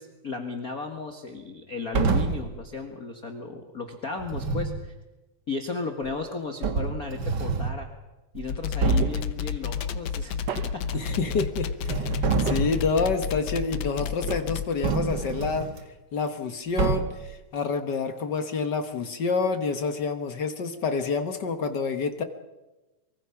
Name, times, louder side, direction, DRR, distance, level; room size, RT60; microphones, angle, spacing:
voice 1, 0.0-4.9 5.5-7.9 8.3-10.4 10.7-10.8, left 4 dB, 35° left, 4 dB, 1.6 m, -35 dB
sound 1, 1.9-2.5 4.2-4.8 6.1-6.2 6.6-7.8 8.3-8.5 8.8-9.3 10.8-11.5 11.8-12.9 14.8-15.8 16.8-17.3, right 4 dB, 45° right, 1.5 m, -27 dB
sound 2, 8.5-14.7, left 7 dB, 75° left, 1.1 m, -31 dB
sound 3, 9.0-9.6 10.5-11.1 12.5-13.1 14.3-14.9, right 7 dB, 75° right, 1.0 m, -37 dB
voice 2, 10.9-15.7 16.1-22.2, left 4 dB, 55° left, 8 dB, 1.2 m, -28 dB
24.0 x 24.0 x 5.9 m, 1.1 s
omnidirectional pair, 3.5 m